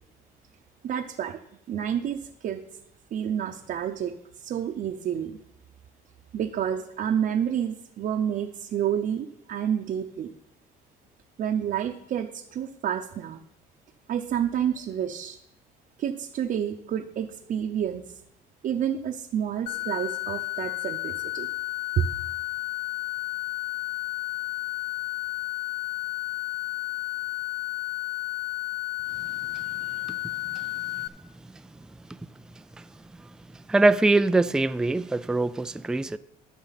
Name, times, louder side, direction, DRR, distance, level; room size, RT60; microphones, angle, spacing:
voice 1, 0.8-1.4 1.7-2.6 3.1-4.1 4.4-5.4 6.3-10.3 11.4-13.4 14.1-15.4 16.0-18.1 18.6-21.5 22.0-22.1, right 9 dB, 55° right, 0.8 m, -29 dB
sound 1, 19.7-31.1, left 20 dB, 80° left, 0.5 m, -32 dB
voice 2, 33.7-36.2, right 2 dB, 5° right, 0.3 m, -22 dB
14.0 x 6.3 x 4.1 m
cardioid pair, 110°, 17 cm